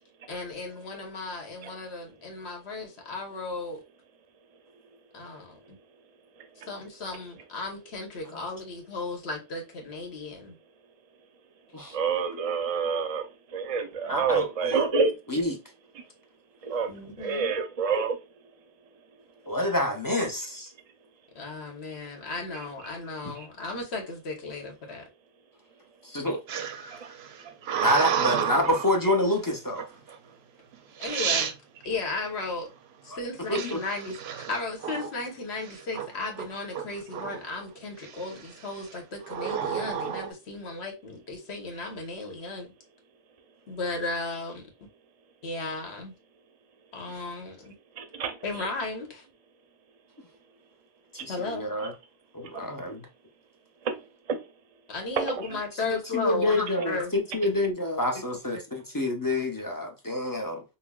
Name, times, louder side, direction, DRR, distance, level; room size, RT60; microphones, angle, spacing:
voice 1, 0.3-3.8 5.1-5.8 6.7-10.6 14.1-14.4 16.9-17.5 21.3-25.0 31.0-31.5 31.8-32.7 33.0-42.7 43.7-44.9 45.4-46.1 46.9-47.7 48.4-49.2 51.3-51.7 54.9-57.1, left 3 dB, 85° left, 1.3 m, -35 dB
voice 2, 11.9-13.2 13.5-15.1 16.6-16.9 17.2-18.2 48.0-48.3 53.8-53.9 54.3-54.4 55.2-55.3 56.8-56.9, right 5 dB, 45° right, 0.5 m, -27 dB
voice 3, 14.1-14.9 15.3-15.6 19.5-20.7 23.2-23.3 26.2-26.4 27.8-29.8 33.1-33.2 33.5-33.8 51.1-51.9 52.3-53.1 55.9-60.6, left 1 dB, 25° left, 0.5 m, -27 dB
sound 1, 26.5-29.0 29.8-30.2 30.7-30.8 31.0-31.6 33.6-35.2 35.6-36.1 36.4-37.6 38.0-38.5 39.2-40.3, right 8 dB, 80° right, 0.8 m, -31 dB
5.5 x 2.1 x 2.3 m
omnidirectional pair, 1.1 m